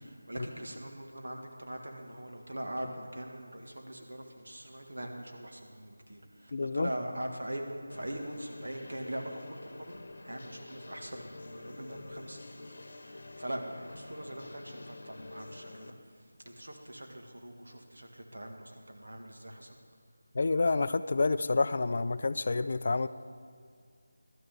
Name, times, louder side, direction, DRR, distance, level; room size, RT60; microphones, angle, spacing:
voice 1, 0.0-10.0 10.2-15.9 16.5-19.8, right 1 dB, 85° right, 2 dB, 1.9 m, -42 dB
voice 2, 6.5-6.9 20.3-23.1, left 3 dB, 40° left, 13 dB, 0.3 m, -28 dB
sound 1, 7.9-15.9, left 2 dB, 55° left, 0.9 m, -48 dB
12.5 x 6.6 x 8.7 m, 2.2 s
figure-of-eight pair, 175°, 0 cm